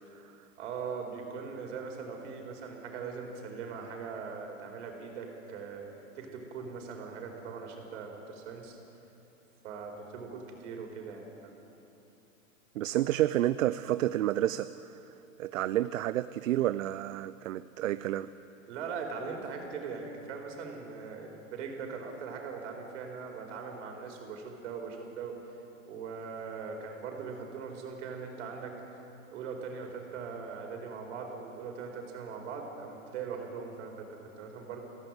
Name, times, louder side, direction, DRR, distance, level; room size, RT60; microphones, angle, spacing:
voice 1, 0.6-5.9 6.1-8.8 9.6-11.5 18.7-25.4 25.9-28.7 29.3-34.8, right 5 dB, 60° right, 2 dB, 4.6 m, -40 dB
voice 2, 12.7-15.0 15.4-18.3, right 13 dB, 75° right, 14 dB, 0.6 m, -30 dB
23.0 x 16.5 x 8.0 m, 2.9 s
hypercardioid pair, 135°, 40 cm